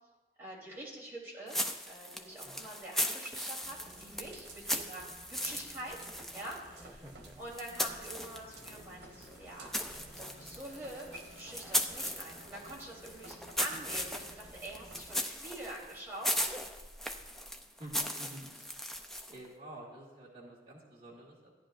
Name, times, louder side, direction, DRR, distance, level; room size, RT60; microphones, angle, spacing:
voice 1, 0.4-1.6 1.9-6.0 6.3-7.0 7.4-9.7 10.0-16.6, right 1 dB, 15° right, -6 dB, 3.4 m, -45 dB
sound 1, 1.5-8.9 9.2-19.5, equal, ahead, 0.4 m, -38 dB
sound 2, 3.6-15.1, right 2 dB, 80° right, 1.2 m, -55 dB
voice 2, 7.0-7.4 17.8-18.5 19.3-21.5, right 1 dB, 30° right, -6 dB, 2.0 m, -49 dB
sound 3, 8.4-16.5, left 1 dB, 60° left, 1.0 m, -59 dB
16.0 x 10.5 x 2.5 m, 1.2 s
head